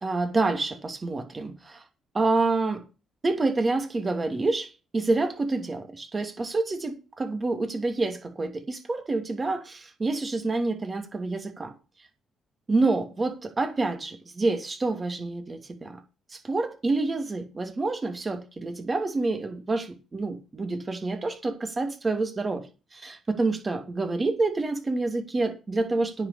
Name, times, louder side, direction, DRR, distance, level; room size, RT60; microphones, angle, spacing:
voice 1, 0.0-1.8 2.1-2.8 3.2-11.7 12.7-16.0 16.3-22.7 22.9-26.3, right 3 dB, 30° right, 2.7 m, -28 dB
9.7 x 6.7 x 7.1 m
cardioid pair, 90°, 0 cm